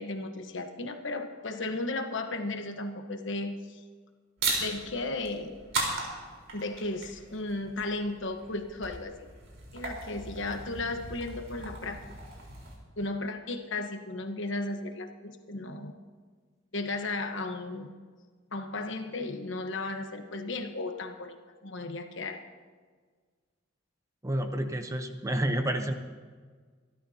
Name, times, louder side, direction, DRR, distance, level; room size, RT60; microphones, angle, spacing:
voice 1, 0.0-3.8 4.6-5.5 6.5-9.3 9.7-12.0 13.0-15.9 16.7-17.9 18.5-21.4 21.6-22.4, left 2 dB, 70° left, 6 dB, 1.2 m, -35 dB
sound 1, 4.4-12.7, right 3 dB, 90° right, 4.1 m, -37 dB
voice 2, 24.2-25.9, right 1 dB, 15° right, 6 dB, 0.8 m, -29 dB
25.0 x 12.5 x 2.8 m, 1.6 s
head